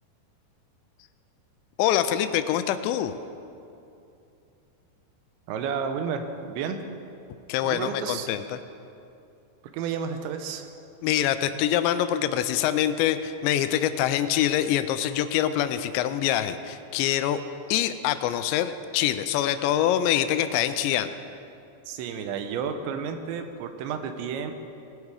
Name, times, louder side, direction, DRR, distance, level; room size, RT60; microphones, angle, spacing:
voice 1, 1.8-3.2 7.5-8.6 11.0-17.4 17.7-21.1, left 11 dB, 85° left, 11 dB, 2.8 m, -25 dB
voice 2, 5.5-6.8 7.6-8.3 9.7-10.7 21.9-24.5, right 6 dB, 85° right, 7 dB, 3.1 m, -31 dB
19.5 x 8.5 x 4.8 m, 2.6 s
omnidirectional pair, 5.1 m